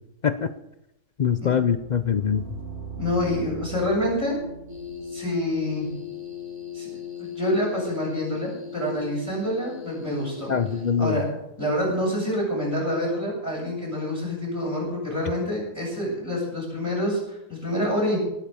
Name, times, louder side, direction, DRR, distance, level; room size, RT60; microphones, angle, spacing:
voice 1, 1.2-2.5 10.5-11.2, left 7 dB, 65° left, 11 dB, 0.4 m, -23 dB
sound 1, 1.5-6.5, right 4 dB, 40° right, 1.9 m, -40 dB
voice 2, 3.0-4.4 5.1-5.9 6.7-6.9 7.2-10.5 11.0-11.3 11.6-18.2, left 1 dB, 10° left, -6 dB, 7.3 m, -27 dB
sound 2, 4.7-11.2, left 6 dB, 15° right, 3.0 m, -38 dB
18.5 x 9.1 x 7.0 m, 0.86 s
omnidirectional pair, 1.7 m